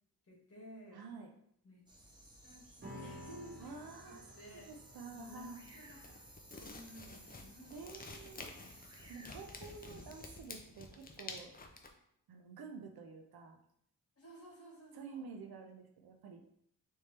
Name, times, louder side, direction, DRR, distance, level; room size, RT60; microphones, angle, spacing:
voice 1, 0.3-1.0 1.6-1.8 2.4-3.7 4.0-4.7 5.1-5.5 5.7-6.1 6.6-7.7 14.2-15.2, equal, 40° left, -3 dB, 1.7 m, -54 dB
voice 2, 0.9-1.3 3.6-5.6 7.7-8.4 9.1-11.5 12.3-13.6 14.9-16.4, right 4 dB, 80° right, 3 dB, 0.7 m, -50 dB
sound 1, 1.9-10.4, right 1 dB, 10° right, 0.8 m, -58 dB
sound 2, 2.8-9.5, equal, 30° right, 1.2 m, -55 dB
sound 3, 5.6-11.9, left 3 dB, 25° left, 0.5 m, -50 dB
4.2 x 3.4 x 3.3 m, 0.69 s
wide cardioid pair, 125°, 37 cm